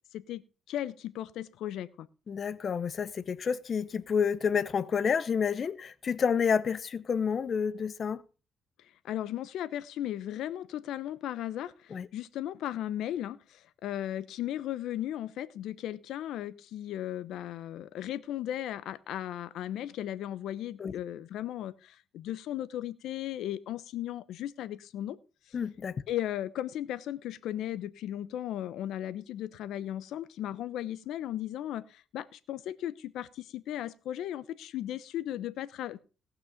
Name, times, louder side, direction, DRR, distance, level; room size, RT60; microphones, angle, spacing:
voice 1, 0.1-2.1 9.0-25.2 26.1-36.0, left 12 dB, 85° left, 0.8 m, -36 dB
voice 2, 2.3-8.2 11.9-12.1 20.8-20.9 25.5-26.0, left 6 dB, 50° left, 0.8 m, -29 dB
18.0 x 6.1 x 5.2 m
cardioid pair, 90°, 0 cm